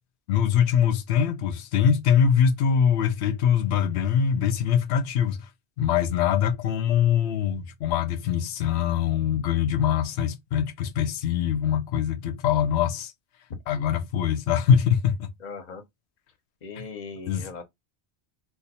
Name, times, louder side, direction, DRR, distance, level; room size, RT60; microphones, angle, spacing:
voice 1, 0.3-5.5 5.8-13.1 13.7-15.3 17.3-17.4, left 8 dB, 80° left, 0.9 m, -23 dB
voice 2, 15.4-15.8 16.6-17.6, left 4 dB, 45° left, 0.8 m, -38 dB
2.5 x 2.3 x 4.0 m
omnidirectional pair, 1.1 m